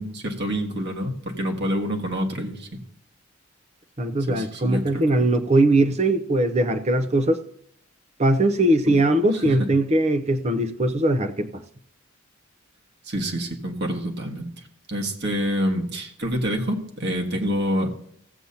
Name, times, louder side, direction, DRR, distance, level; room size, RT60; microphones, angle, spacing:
voice 1, 0.0-2.8 4.3-5.3 8.9-9.0 9.6-9.7 13.0-14.5 14.9-17.9, equal, 55° right, 1.6 m, -27 dB
voice 2, 4.0-7.4 8.2-11.5, right 1 dB, 30° right, 0.7 m, -20 dB
16.0 x 8.1 x 2.8 m
head